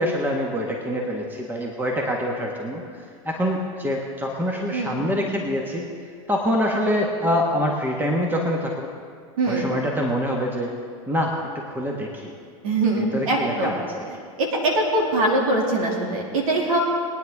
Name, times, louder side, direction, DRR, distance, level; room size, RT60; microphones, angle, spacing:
voice 1, 0.0-5.9 6.3-8.9 9.5-10.7 11.1-12.3 13.0-14.1, equal, 10° right, 0 dB, 1.6 m, -25 dB
voice 2, 4.7-5.1 9.4-9.7 12.6-13.8 14.4-16.8, right 2 dB, 80° right, 0 dB, 2.6 m, -22 dB
22.0 x 9.6 x 3.6 m, 2.1 s
hypercardioid pair, 100°, 18 cm